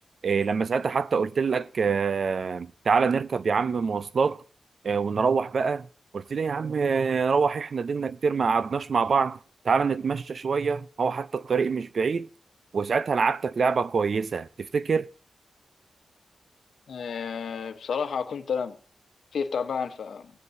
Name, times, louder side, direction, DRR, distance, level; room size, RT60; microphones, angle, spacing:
voice 1, 0.2-4.4 4.8-5.9 6.1-9.4 9.6-12.3 12.7-15.1, right 5 dB, 60° right, 0.5 m, -25 dB
voice 2, 16.9-18.8 19.3-20.3, left 6 dB, 90° left, 1.0 m, -31 dB
18.0 x 8.0 x 2.7 m
wide cardioid pair, 115°, 0 cm